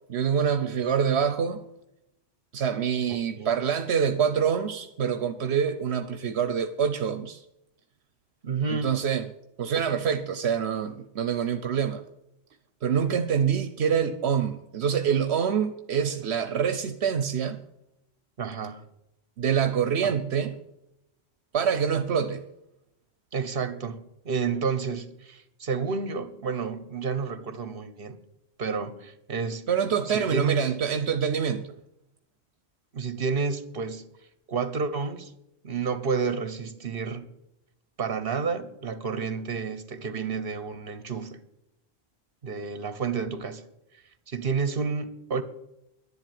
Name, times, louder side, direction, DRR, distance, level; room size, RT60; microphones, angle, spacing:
voice 1, 0.1-1.6 2.5-7.4 8.7-9.3 9.6-12.0 12.8-17.6 19.4-20.6 21.5-22.4 29.7-31.7, right 7 dB, 85° right, 1.1 m, -26 dB
voice 2, 3.1-3.5 8.4-8.9 18.4-18.8 20.0-20.2 23.3-28.2 28.6-29.7 30.0-30.7 32.9-34.1 34.5-35.3 35.6-37.3 38.0-41.4 42.4-43.7 44.3-45.4, right 5 dB, 60° right, 1.5 m, -30 dB
11.0 x 11.0 x 9.3 m
omnidirectional pair, 1.1 m